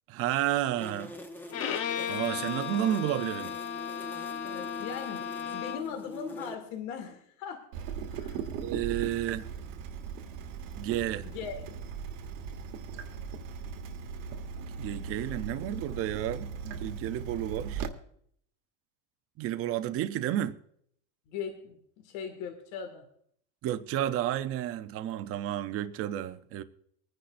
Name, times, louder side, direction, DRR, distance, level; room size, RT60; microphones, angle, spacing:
voice 1, 0.1-1.1 2.1-3.5 8.6-9.5 10.8-11.3 14.8-17.9 19.4-20.5 23.6-26.6, right 12 dB, 35° right, 0.6 m, -31 dB
sound 1, 0.8-6.5, left 1 dB, 5° left, 0.9 m, -44 dB
Bowed string instrument, 1.5-6.0, left 8 dB, 40° left, 0.8 m, -35 dB
voice 2, 4.4-7.7 8.1-8.5 11.2-11.7 21.3-23.1, left 7 dB, 80° left, 2.1 m, -40 dB
Water tap faucet / Drip, 7.7-17.9, right 6 dB, 70° right, 1.4 m, -38 dB
24.5 x 10.5 x 2.5 m
cardioid pair, 160°, 39 cm